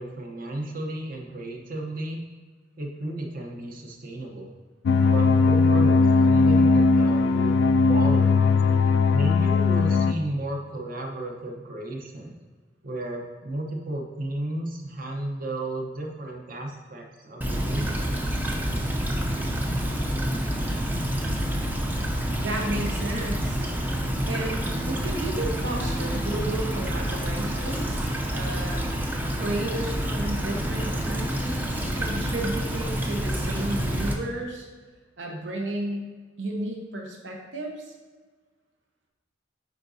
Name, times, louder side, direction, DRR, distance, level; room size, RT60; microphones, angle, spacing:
voice 1, 0.0-2.2 2.8-4.5 5.0-7.5 7.9-8.4 9.1-12.4 12.8-18.1, right 1 dB, 50° right, 1 dB, 0.9 m, -33 dB
sound 1, 4.9-10.1, left 4 dB, 65° left, 0.3 m, -19 dB
Stream / Trickle dribble, 17.4-34.1, equal, 10° right, 0.5 m, -28 dB
voice 2, 22.4-23.6 24.3-28.9 29.3-34.7 35.2-36.1 36.4-37.9, right 1 dB, 75° right, 0 dB, 1.0 m, -33 dB
9.6 x 3.9 x 2.7 m, 1.4 s
head